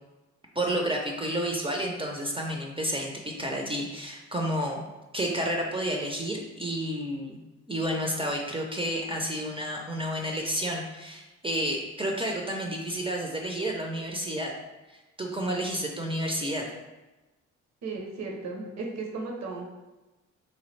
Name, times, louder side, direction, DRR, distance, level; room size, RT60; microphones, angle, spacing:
voice 1, 0.6-4.8 5.1-7.4 7.7-14.5 15.2-16.6, equal, 15° right, 0 dB, 0.5 m, -30 dB
voice 2, 17.8-19.7, right 3 dB, 60° right, -1 dB, 0.8 m, -35 dB
3.1 x 2.2 x 3.1 m, 1.1 s
supercardioid pair, 60°, 31 cm